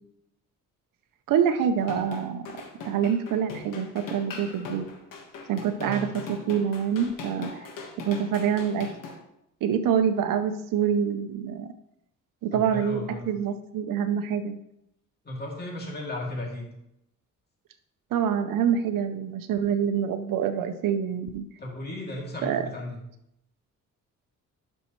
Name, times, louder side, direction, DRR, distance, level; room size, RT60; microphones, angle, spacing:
voice 1, 1.3-2.4 2.8-4.9 5.5-7.5 8.0-8.9 9.6-11.7 12.4-14.6 18.1-21.4 22.4-22.7, right 8 dB, 85° right, 7 dB, 0.7 m, -26 dB
sound 1, 1.8-9.2, left 3 dB, 85° left, 1.5 m, -40 dB
voice 2, 5.8-6.1 12.5-13.2 15.2-16.7 21.6-23.0, left 1 dB, 30° left, -2 dB, 2.5 m, -35 dB
11.5 x 5.4 x 3.1 m, 0.80 s
cardioid pair, 115°, 32 cm